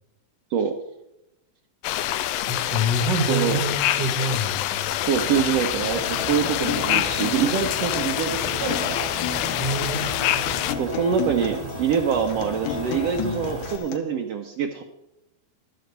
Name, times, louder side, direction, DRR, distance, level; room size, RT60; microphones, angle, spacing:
sound 1, 1.8-10.8, left 13 dB, 90° left, 2.4 m, -26 dB
voice 1, 2.5-4.9 9.6-10.1, equal, 55° right, 5 dB, 1.2 m, -26 dB
voice 2, 3.3-3.6 5.1-9.1 10.8-14.8, right 7 dB, 80° right, 2 dB, 1.4 m, -25 dB
sound 2, 5.1-13.8, right 3 dB, 35° right, 0.9 m, -37 dB
Acoustic guitar, 6.0-14.0, left 8 dB, 70° left, 2.3 m, -33 dB
13.0 x 6.4 x 8.0 m, 0.89 s
omnidirectional pair, 3.9 m